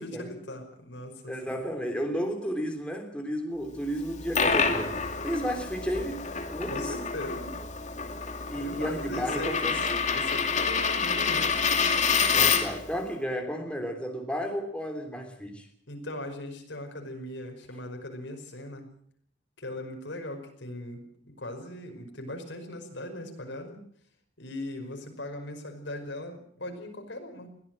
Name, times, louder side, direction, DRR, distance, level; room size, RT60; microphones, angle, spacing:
voice 1, 0.0-1.6 6.7-7.6 8.6-9.9 10.1-11.6 15.9-18.9 19.6-23.8 24.4-27.5, left 1 dB, 75° left, 5 dB, 5.3 m, -39 dB
voice 2, 1.3-4.9 5.2-7.0 8.5-9.8 12.3-15.7, equal, 5° left, 3 dB, 3.3 m, -33 dB
Coin (dropping), 4.0-12.9, left 5 dB, 40° left, 2.5 m, -28 dB
22.0 x 17.0 x 7.7 m, 0.62 s
head